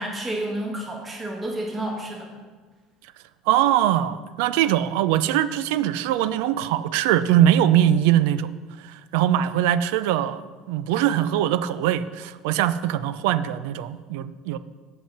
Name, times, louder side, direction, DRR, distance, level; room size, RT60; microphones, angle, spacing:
voice 1, 0.0-2.3, right 1 dB, 15° right, -1 dB, 1.4 m, -30 dB
voice 2, 3.5-8.5 8.8-14.6, right 11 dB, 85° right, 14 dB, 0.4 m, -22 dB
7.4 x 5.4 x 6.6 m, 1.4 s
cardioid pair, 170°, 0 cm